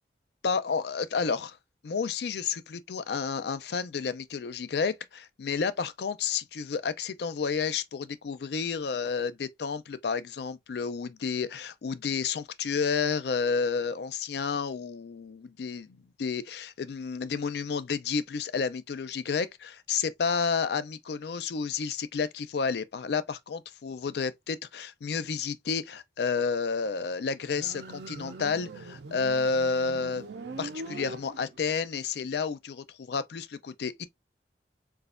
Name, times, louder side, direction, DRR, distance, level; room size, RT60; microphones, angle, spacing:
voice 1, 0.4-1.6 1.8-30.3 30.6-34.0, left 5 dB, 65° left, 0.4 m, -31 dB
Motorcycle, 27.4-31.8, right 3 dB, 70° right, 0.6 m, -42 dB
4.1 x 2.4 x 2.4 m
head